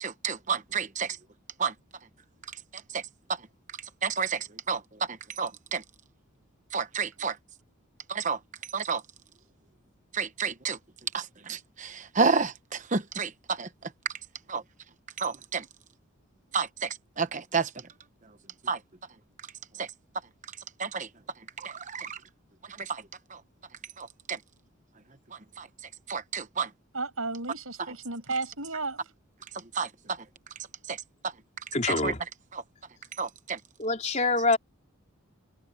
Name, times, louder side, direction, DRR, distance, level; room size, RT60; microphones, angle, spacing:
voice 1, 0.0-1.2 1.6-1.7 2.9-3.0 4.0-4.8 5.1-5.8 6.7-7.4 8.1-8.4 8.7-9.0 10.1-10.8 11.1-13.7 14.5-14.6 15.2-15.6 16.5-17.7 18.6-18.8 19.8-19.9 20.8-21.1 21.6-22.2 22.8-23.0 23.3-23.4 24.0-24.4 25.6-25.7 26.1-26.7 29.7-29.9 30.9-31.0 31.2-31.3 31.9-32.1 32.5-32.6 33.2-33.6, right 5 dB, 35° right, 1.0 m, -30 dB
voice 2, 26.9-29.0, right 3 dB, 75° right, 6.7 m, -33 dB
voice 3, 31.7-32.2 33.8-34.6, left 3 dB, 35° left, 4.4 m, -25 dB
head